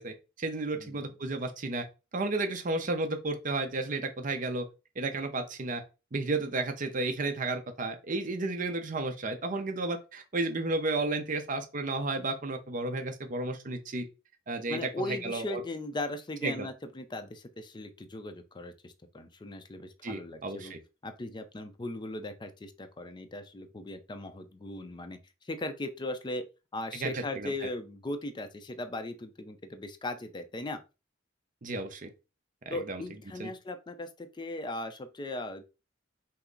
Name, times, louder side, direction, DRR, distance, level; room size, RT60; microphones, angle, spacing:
voice 1, 0.0-1.8 2.1-4.7 5.0-5.8 6.1-14.1 14.5-14.9 15.2-15.6 16.4-16.7 20.0-20.8 27.0-27.5 31.6-32.1 32.7-33.0 33.4-33.5, right 2 dB, 45° right, 0.6 m, -32 dB
voice 2, 0.7-1.1 14.7-20.7 21.0-26.5 26.7-30.8 32.7-35.6, left 1 dB, 25° left, 0.5 m, -38 dB
5.6 x 2.0 x 3.8 m
head